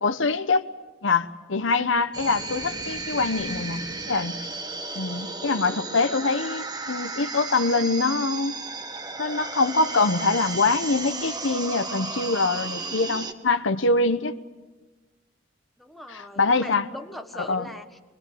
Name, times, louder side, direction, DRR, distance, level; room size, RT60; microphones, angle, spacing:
voice 1, 0.0-0.7 1.0-4.4 5.0-8.5 9.2-14.4 16.1-16.8 17.5-17.7, left 3 dB, 75° left, 1.1 m, -24 dB
sound 1, 2.1-13.3, right 3 dB, 20° right, 1.4 m, -34 dB
voice 2, 15.8-18.0, left 1 dB, ahead, 1.5 m, -40 dB
25.0 x 21.5 x 8.6 m
head